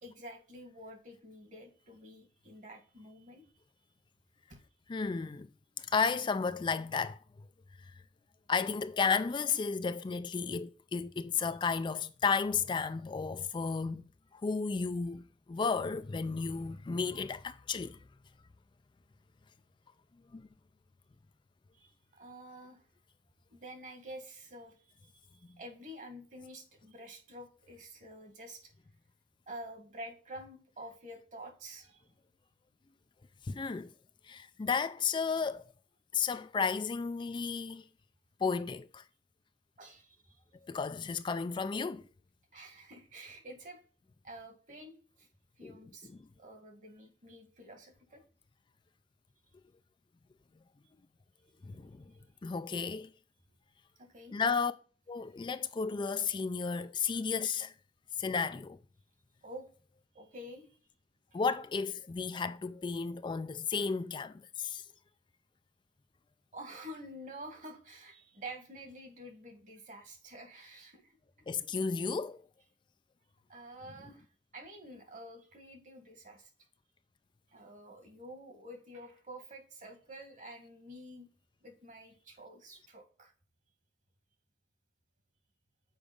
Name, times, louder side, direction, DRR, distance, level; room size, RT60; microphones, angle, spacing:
voice 1, 0.0-3.5 4.5-4.6 21.7-22.9 23.5-25.1 25.6-28.7 29.5-32.0 39.8-40.4 42.5-43.8 44.2-45.3 45.6-46.1 46.4-48.2 54.0-54.4 59.4-59.7 60.1-60.8 61.3-61.4 66.5-71.2 73.5-74.3 74.5-76.5 77.5-81.3 81.6-83.3, right 1 dB, 45° right, 1.9 m, -49 dB
voice 2, 4.9-5.5 5.8-7.2 7.8-7.9 8.5-15.2 15.5-18.0 20.3-20.4 33.4-33.9 34.2-35.7 36.1-37.9 38.4-39.0 40.6-42.1 45.6-46.2 51.6-52.1 52.4-53.1 54.3-54.7 55.1-57.7 58.2-58.8 61.3-64.8 71.5-72.4, left 5 dB, 25° left, 0.3 m, -33 dB
7.0 x 4.9 x 5.2 m
head